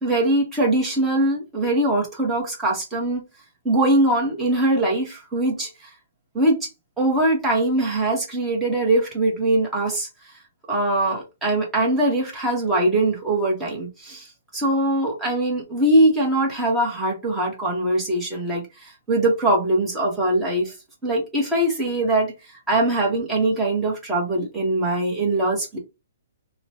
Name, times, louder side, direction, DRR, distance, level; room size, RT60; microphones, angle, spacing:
voice 1, 0.0-3.2 3.6-5.7 6.3-6.7 7.0-10.1 10.7-14.3 14.5-20.7 21.0-22.3 22.7-25.8, right 1 dB, 10° right, 0.9 m, -22 dB
2.9 x 2.0 x 2.8 m
hypercardioid pair, 160°, 0 cm